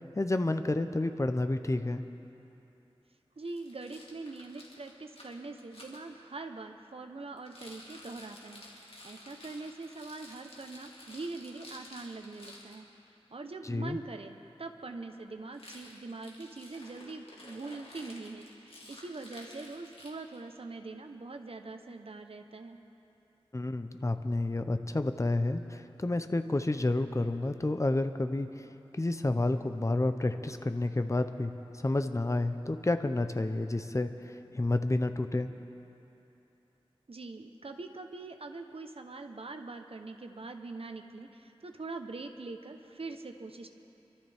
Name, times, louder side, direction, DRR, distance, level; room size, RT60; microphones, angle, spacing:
voice 1, 0.2-2.0 13.6-14.0 23.5-28.6 28.9-35.5, left 2 dB, 30° left, 8 dB, 0.7 m, -30 dB
Rattle, 3.4-6.0 7.4-12.8 15.5-20.5, left 1 dB, 70° left, 2.2 m, -52 dB
voice 2, 3.4-12.9 13.3-22.8 37.1-43.7, right 3 dB, 70° right, 5 dB, 0.9 m, -43 dB
26.0 x 13.0 x 3.5 m, 2.9 s
wide cardioid pair, 60°, 10 cm